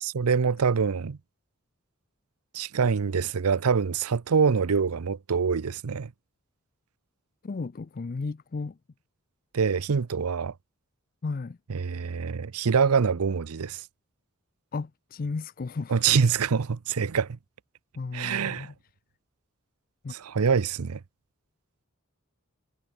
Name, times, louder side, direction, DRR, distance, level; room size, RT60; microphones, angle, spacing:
voice 1, 0.0-1.2 2.5-6.1 9.5-10.5 11.7-13.8 15.9-17.4 18.1-18.7 20.1-21.0, right 6 dB, 85° right, 0.6 m, -25 dB
voice 2, 7.4-8.8 11.2-11.6 14.7-16.0 18.0-18.7 20.0-20.1, left 4 dB, 40° left, 0.4 m, -34 dB
head